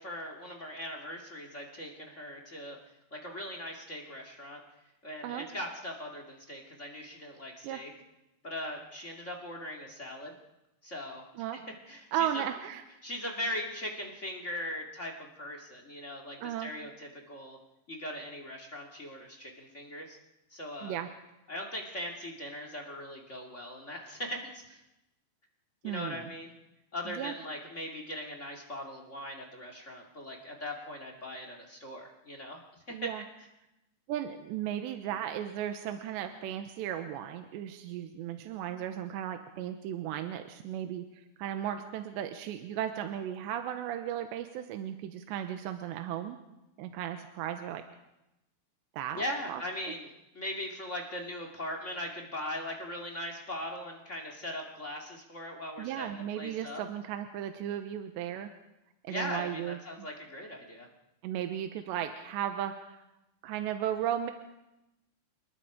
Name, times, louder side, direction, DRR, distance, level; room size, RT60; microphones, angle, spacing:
voice 1, 0.0-2.8 3.1-4.6 5.0-7.9 8.4-10.3 10.8-11.2 11.9-12.4 13.0-17.6 17.9-20.2 20.5-21.0 21.5-24.8 25.8-26.5 26.9-32.6 33.0-33.1 49.1-56.8 59.1-60.9, left 1 dB, 35° left, 3 dB, 1.1 m, -40 dB
voice 2, 12.1-12.8 16.4-16.7 20.8-21.1 25.8-26.3 27.1-27.3 32.9-33.2 34.1-46.4 46.8-47.8 48.9-49.6 55.8-58.5 59.0-60.1 61.2-63.0 63.4-64.3, right 10 dB, 80° right, 7 dB, 3.0 m, -35 dB
29.0 x 20.0 x 5.0 m, 0.94 s
omnidirectional pair, 5.4 m